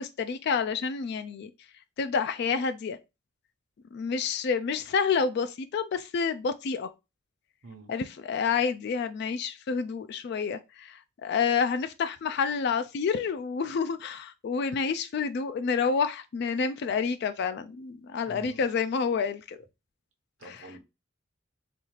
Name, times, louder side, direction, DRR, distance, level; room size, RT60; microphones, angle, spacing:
voice 1, 0.0-1.5 2.0-3.0 3.9-6.9 7.9-19.6 20.5-20.6, left 5 dB, 55° left, 0.3 m, -29 dB
voice 2, 18.2-18.6 20.4-20.8, right 2 dB, 75° right, 0.9 m, -46 dB
4.1 x 2.4 x 3.1 m
head